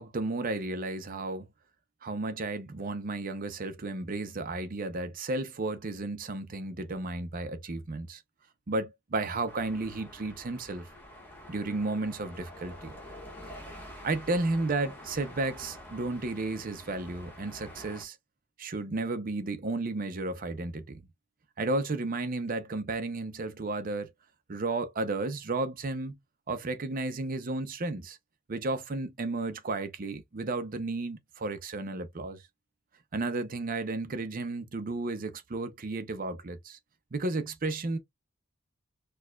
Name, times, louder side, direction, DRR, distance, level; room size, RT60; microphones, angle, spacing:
voice 1, 0.0-1.5 2.0-8.2 8.7-10.9 11.5-12.9 14.0-18.2 18.6-21.0 21.6-24.1 24.5-26.1 26.5-28.2 28.5-32.4 33.1-36.8 37.1-38.0, right 2 dB, 40° right, 0.6 m, -33 dB
sound 1, 9.5-18.0, left 1 dB, 10° left, 1.0 m, -47 dB
4.6 x 2.3 x 2.2 m
head